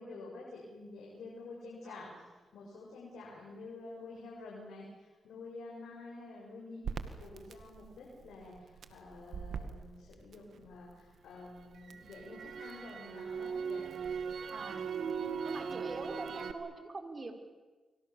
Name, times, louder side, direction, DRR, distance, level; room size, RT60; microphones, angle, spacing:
voice 1, 0.0-2.1 2.5-6.9 7.2-13.9, left 3 dB, 85° left, -4 dB, 7.5 m, -49 dB
voice 2, 1.8-2.3 14.5-14.9 15.4-17.3, right 3 dB, 40° right, 5 dB, 5.1 m, -44 dB
Crackle, 6.8-11.0 11.4-16.5, right 6 dB, 75° right, 2.1 m, -40 dB
29.0 x 24.5 x 7.2 m, 1.3 s
cardioid pair, 55°, 0 cm